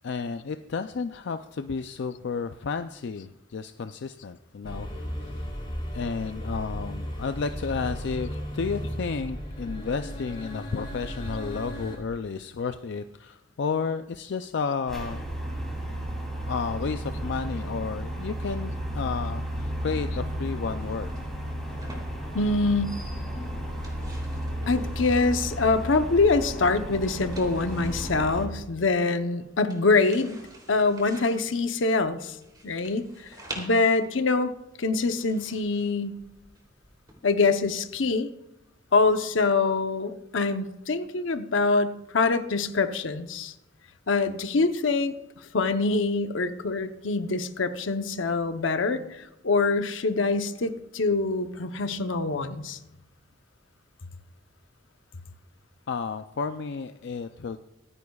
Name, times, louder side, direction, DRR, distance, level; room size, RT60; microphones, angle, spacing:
voice 1, 0.0-4.9 5.3-5.5 5.9-15.2 16.5-21.1 55.9-57.6, left 5 dB, 65° left, 8 dB, 0.4 m, -32 dB
sound 1, 4.6-12.0, equal, 25° left, 4.6 m, -35 dB
sound 2, 14.9-28.5, equal, ahead, 3.1 m, -33 dB
sound 3, 20.7-37.1, right 2 dB, 20° right, 3.0 m, -49 dB
voice 2, 22.3-22.9 24.7-30.4 30.7-32.4 32.6-33.0 33.6-34.5 34.8-36.1 37.2-38.3 38.9-43.5 44.1-45.1 45.5-52.8, left 3 dB, 80° left, 9 dB, 0.8 m, -24 dB
25.0 x 9.8 x 2.4 m, 0.94 s
head